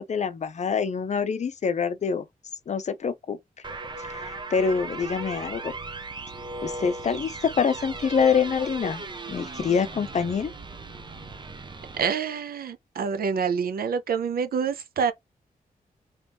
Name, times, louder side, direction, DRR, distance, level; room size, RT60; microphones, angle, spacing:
voice 1, 0.0-2.2 2.7-3.4 4.0-5.7 6.6-9.0 9.3-10.5, left 6 dB, 50° left, 0.5 m, -26 dB
sound 1, 3.6-12.0, right 3 dB, 30° right, 0.6 m, -37 dB
voice 2, 11.9-15.1, right 6 dB, 85° right, 0.5 m, -27 dB
3.1 x 2.8 x 3.3 m
wide cardioid pair, 135°, 15 cm